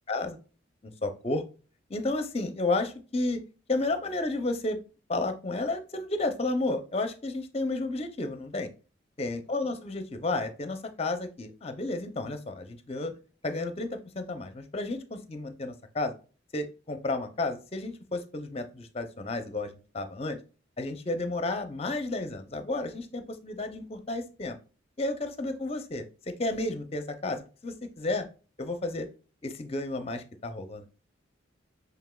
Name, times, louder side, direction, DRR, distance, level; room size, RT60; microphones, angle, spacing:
voice 1, 0.8-1.4 1.9-3.4 3.7-4.8 5.1-8.7 9.2-13.1 13.4-16.1 16.5-20.4 20.8-24.6 25.0-28.3 28.6-29.1 29.4-30.9, left 2 dB, 30° left, 9 dB, 0.6 m, -32 dB
7.0 x 3.3 x 2.3 m, 0.35 s
head